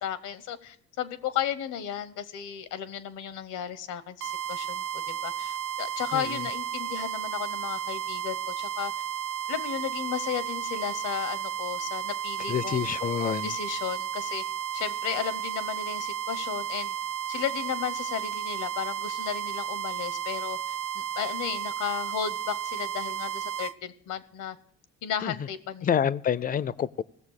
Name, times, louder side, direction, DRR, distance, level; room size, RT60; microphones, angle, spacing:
voice 1, 0.0-8.9 9.5-12.9 13.4-14.4 14.7-16.9 17.3-24.6 25.0-25.9, left 9 dB, 85° left, 0.9 m, -34 dB
sound 1, 4.2-23.7, right 9 dB, 80° right, 0.7 m, -33 dB
voice 2, 6.1-6.4 12.5-13.5 25.2-25.3 25.8-27.0, left 8 dB, 30° left, 0.4 m, -27 dB
16.5 x 6.9 x 6.5 m
cardioid pair, 90°, 30 cm